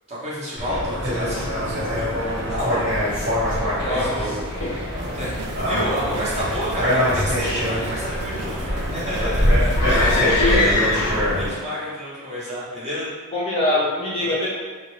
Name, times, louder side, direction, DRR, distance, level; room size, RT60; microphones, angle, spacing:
voice 1, 0.1-2.1 2.5-2.8 3.8-4.3 4.8-4.9 5.2-13.1 14.2-14.3, equal, 30° right, -8 dB, 0.8 m, -30 dB
sound 1, 0.6-11.5, equal, 60° right, 1.3 m, -23 dB
voice 2, 3.8-4.2 4.6-4.8 10.1-10.7 13.3-14.5, left 2 dB, 25° left, -6 dB, 0.5 m, -23 dB
sound 2, 5.0-10.2, right 3 dB, 85° right, 0.3 m, -37 dB
sound 3, 9.7-11.5, left 3 dB, 90° left, 0.4 m, -24 dB
2.5 x 2.1 x 3.0 m, 1.4 s
head